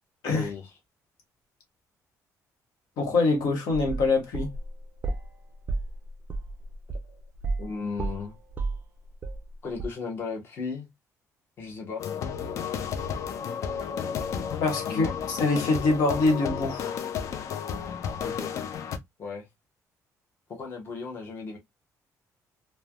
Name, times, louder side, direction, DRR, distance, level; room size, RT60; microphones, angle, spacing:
voice 1, 0.3-0.7 7.6-8.3 9.6-10.9 11.6-12.1 14.9-15.1 18.2-18.6 19.2-19.5 20.5-21.6, left 4 dB, 35° left, 0.9 m, -35 dB
voice 2, 3.0-4.5 14.6-17.0, left 3 dB, 75° left, 1.0 m, -25 dB
sound 1, 3.7-5.3 5.7-7.7 8.0-9.5 9.8-9.9, right 3 dB, 30° right, 0.3 m, -32 dB
sound 2, 12.0-19.0, left 7 dB, 50° left, 0.4 m, -32 dB
3.2 x 2.1 x 2.2 m
cardioid pair, 165°, 6 cm